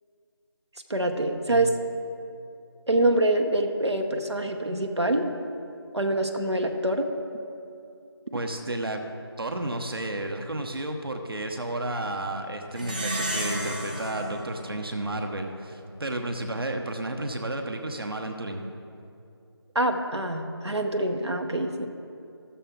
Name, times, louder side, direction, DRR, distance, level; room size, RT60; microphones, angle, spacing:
voice 1, 0.9-1.7 2.9-5.3 5.9-7.1 19.7-21.9, right 1 dB, 85° right, 3 dB, 1.0 m, -25 dB
voice 2, 8.3-9.0 9.4-18.7, right 1 dB, 60° right, 4 dB, 0.9 m, -32 dB
Plucked string instrument, 12.8-15.6, right 1 dB, 20° right, 0.6 m, -33 dB
14.5 x 7.1 x 3.7 m, 2.5 s
figure-of-eight pair, 165°, 14 cm